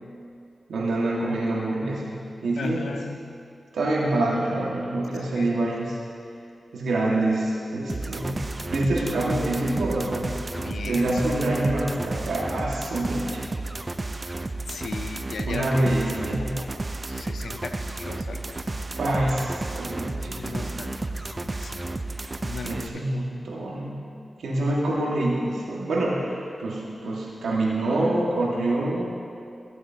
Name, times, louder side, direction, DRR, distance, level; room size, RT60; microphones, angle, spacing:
voice 1, 0.7-2.1 2.4-2.9 3.7-6.0 6.7-8.4 8.7-10.3 10.8-13.4 15.5-16.5 19.0-20.9 22.6-23.9 24.4-29.0, right 2 dB, 90° right, -4 dB, 1.7 m, -26 dB
voice 2, 2.6-3.3 5.4-5.7 10.5-11.2 14.7-15.9 16.2-18.8 20.2-20.9 21.2-22.0 22.4-23.0 24.5-24.8, left 4 dB, 80° left, 7 dB, 0.5 m, -37 dB
sound 1, 7.9-22.9, right 2 dB, 35° right, 0.5 m, -32 dB
14.5 x 8.0 x 2.8 m, 2.5 s
cardioid pair, 50°, 0 cm